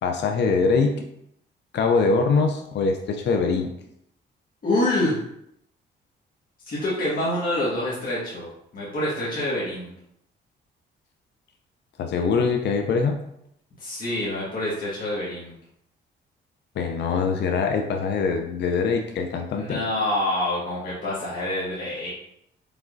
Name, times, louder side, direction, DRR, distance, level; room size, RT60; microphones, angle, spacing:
voice 1, 0.0-1.0 1.7-3.7 12.0-13.2 16.8-19.8, left 4 dB, 60° left, 4 dB, 0.6 m, -23 dB
voice 2, 4.6-5.2 6.6-8.5 8.7-9.9 13.8-15.5 19.6-22.1, left 1 dB, 45° left, -7 dB, 1.6 m, -26 dB
5.2 x 3.5 x 2.6 m, 0.75 s
cardioid pair, 90°, 20 cm